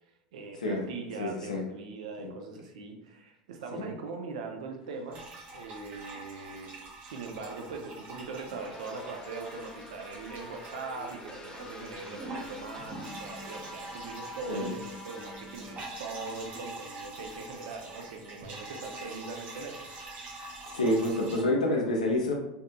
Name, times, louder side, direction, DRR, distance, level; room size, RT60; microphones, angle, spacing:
voice 1, 0.3-5.2 5.5-6.8 7.0-19.9, right 4 dB, 75° right, 3 dB, 0.4 m, -41 dB
voice 2, 1.2-1.6 2.2-2.3 3.7-3.9 14.5-14.7 20.7-22.3, left 1 dB, 90° left, 0 dB, 0.6 m, -28 dB
sound 1, 5.1-21.4, right 2 dB, 40° right, 0.7 m, -45 dB
sound 2, 8.6-15.9, left 2 dB, 20° left, 0.4 m, -47 dB
2.6 x 2.5 x 2.2 m, 0.90 s
hypercardioid pair, 85°, 4 cm